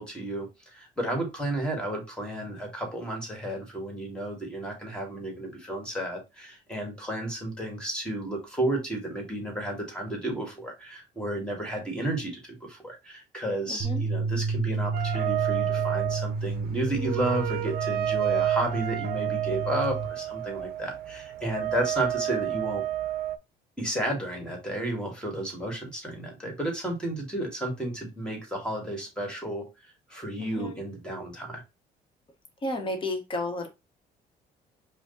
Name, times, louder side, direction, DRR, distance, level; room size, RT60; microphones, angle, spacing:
voice 1, 0.0-22.8 23.8-31.6, right 1 dB, 5° left, 2 dB, 2.1 m, -32 dB
voice 2, 13.7-14.0 30.4-30.8 32.6-33.7, left 1 dB, 30° left, 5 dB, 1.3 m, -32 dB
sound 1, 13.8-20.1, right 4 dB, 20° right, 1.5 m, -31 dB
sound 2, 14.9-23.4, right 13 dB, 65° right, 0.5 m, -30 dB
5.0 x 2.5 x 3.9 m, 0.25 s
cardioid pair, 110°, 17 cm